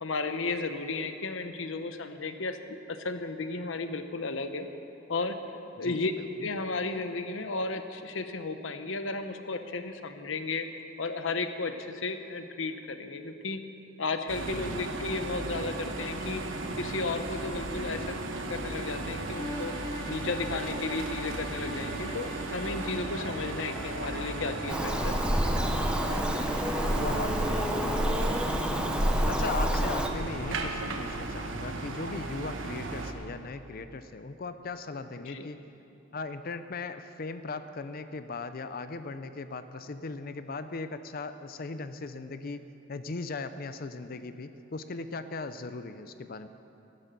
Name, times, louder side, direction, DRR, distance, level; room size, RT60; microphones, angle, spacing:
voice 1, 0.0-2.6 2.9-4.7 5.1-5.4 5.8-6.1 6.4-10.7 11.0-13.6 14.0-16.4 16.8-18.2 18.5-19.7 20.1-25.1 35.2-35.5, left 3 dB, 75° left, 8 dB, 0.9 m, -34 dB
voice 2, 5.8-6.5 14.5-15.0 26.9-28.9 29.3-35.6 36.1-46.5, left 3 dB, 50° left, 11 dB, 0.5 m, -38 dB
sound 1, 14.3-33.1, right 2 dB, 75° right, 1.3 m, -36 dB
sound 2, 19.2-28.9, equal, 15° left, 2.2 m, -43 dB
Bird vocalization bird call bird song, 24.7-30.1, equal, 5° right, 0.8 m, -28 dB
15.5 x 12.0 x 6.8 m, 2.8 s
head